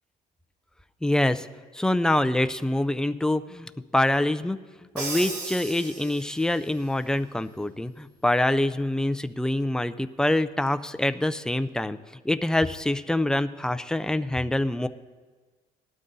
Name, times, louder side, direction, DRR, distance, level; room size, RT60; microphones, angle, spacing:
voice 1, 1.0-1.5 1.7-4.6 4.9-12.0 12.2-14.9, left 1 dB, 5° left, 10 dB, 0.4 m, -25 dB
Crash cymbal, 5.0-6.6, right 3 dB, 80° right, 2.6 m, -35 dB
19.0 x 12.0 x 2.7 m, 1.4 s
cardioid pair, 110°, 17 cm